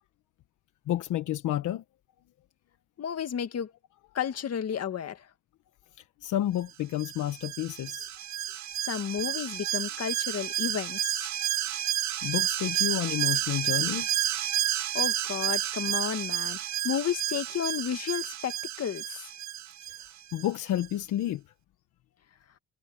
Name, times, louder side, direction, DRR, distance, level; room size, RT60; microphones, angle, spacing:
voice 1, 0.9-1.8 6.2-8.1 12.2-14.2 20.3-21.4, left 12 dB, 80° left, 1.2 m, -30 dB
voice 2, 3.0-3.7 4.1-5.3 8.9-11.3 14.9-16.6 16.8-19.2, left 8 dB, 55° left, 2.1 m, -32 dB
Alarm, 7.0-20.5 20.8-20.9, right 11 dB, 65° right, 1.2 m, -31 dB
cardioid pair, 90°, 30 cm